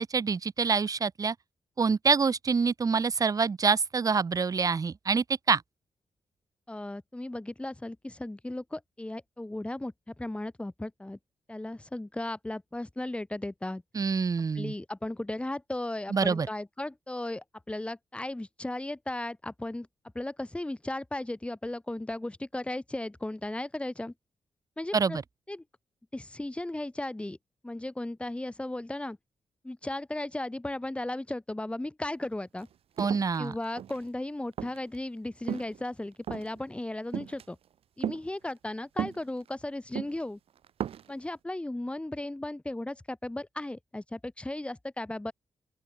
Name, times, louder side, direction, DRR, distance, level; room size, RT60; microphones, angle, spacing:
voice 1, 0.0-1.4 1.8-5.6 13.9-14.7 16.1-16.5 24.9-25.2 33.0-33.5, right 5 dB, 40° right, 1.8 m, -26 dB
voice 2, 6.7-11.2 11.5-13.8 14.5-19.9 20.1-24.1 24.8-25.2 25.5-25.6 26.1-27.4 27.6-29.2 29.6-32.7 33.4-37.6 38.0-40.4 41.1-45.3, left 1 dB, 10° left, 6.5 m, -36 dB
sound 1, 32.6-32.7 33.0-34.1 34.6-35.0 35.4-35.8 36.2-36.6 37.1-37.4 38.0-38.2 39.0-39.5 40.0-40.2 40.6-41.1, right 9 dB, 85° right, 4.9 m, -35 dB
open air
wide cardioid pair, 120°, 10 cm